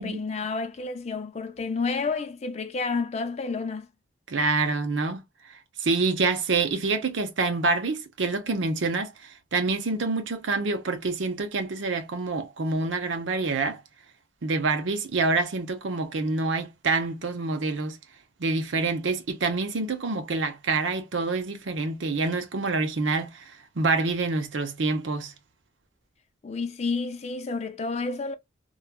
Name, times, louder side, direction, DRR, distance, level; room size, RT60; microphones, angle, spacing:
voice 1, 0.0-3.9 26.4-28.3, left 4 dB, 35° left, 0.4 m, -30 dB
voice 2, 4.3-5.2 5.8-13.8 14.4-18.0 18.4-25.3, right 3 dB, 80° right, 0.7 m, -27 dB
3.0 x 2.3 x 2.2 m
head